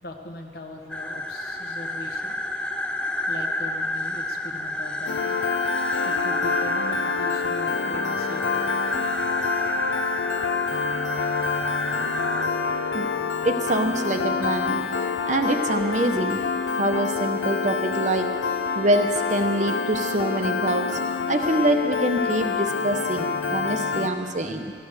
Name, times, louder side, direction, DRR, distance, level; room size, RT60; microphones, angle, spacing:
voice 1, 0.0-2.4 3.3-5.4 6.0-8.8, left 1 dB, 55° left, 3 dB, 1.3 m, -40 dB
sound 1, 0.9-12.5, left 1 dB, 5° left, 0.5 m, -29 dB
Piano, 5.1-24.1, left 5 dB, 85° left, 0.8 m, -27 dB
voice 2, 13.4-14.9 15.3-16.4 16.8-18.3 18.7-20.9 21.3-24.7, right 1 dB, 40° right, 5 dB, 0.8 m, -25 dB
14.0 x 11.5 x 6.5 m, 2.2 s
head